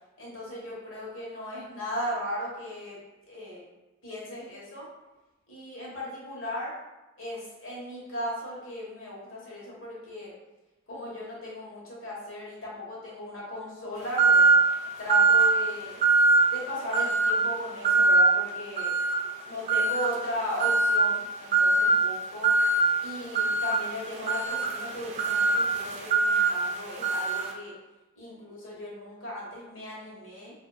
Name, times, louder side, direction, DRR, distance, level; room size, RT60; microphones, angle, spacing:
voice 1, 0.2-3.0 3.3-3.6 4.0-4.9 5.5-6.7 7.2-10.3 10.9-14.5 15.0-16.0 16.5-18.9 19.4-22.5 23.0-27.7 28.2-30.5, left 1 dB, 80° left, -5 dB, 1.5 m, -37 dB
sound 1, 14.2-14.7 15.1-15.6 16.0-16.5 16.9-17.4 17.8-18.3 18.8-19.2 19.7-20.1 20.6-21.0 21.5-21.9 22.4-22.8 23.3-27.5, right 3 dB, 35° right, 0.4 m, -22 dB
4.9 x 2.8 x 2.4 m, 1.1 s
head